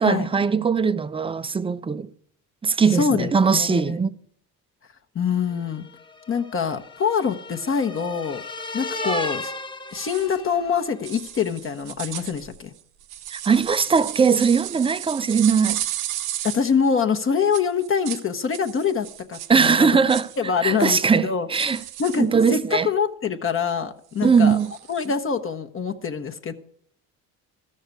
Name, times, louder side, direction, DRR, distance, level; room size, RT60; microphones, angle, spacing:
voice 1, 0.0-2.1 2.6-4.1 13.3-15.8 19.5-20.3 20.6-21.8 22.2-22.9 24.2-24.7, right 5 dB, 15° right, 0.4 m, -20 dB
voice 2, 2.9-3.9 5.1-5.9 6.3-8.4 8.7-9.5 9.9-12.7 16.4-20.0 20.4-21.5 22.0-24.6 24.9-26.5, left 6 dB, 35° left, 0.9 m, -25 dB
sound 1, 5.5-11.0, left 1 dB, 15° left, 1.0 m, -34 dB
sound 2, 9.9-10.3 11.0-16.7 17.5-18.2 18.5-20.4 20.8-21.1 21.5-22.2 24.2-25.1, right 13 dB, 80° right, 0.9 m, -34 dB
13.0 x 6.5 x 8.1 m
cardioid pair, 95°, 37 cm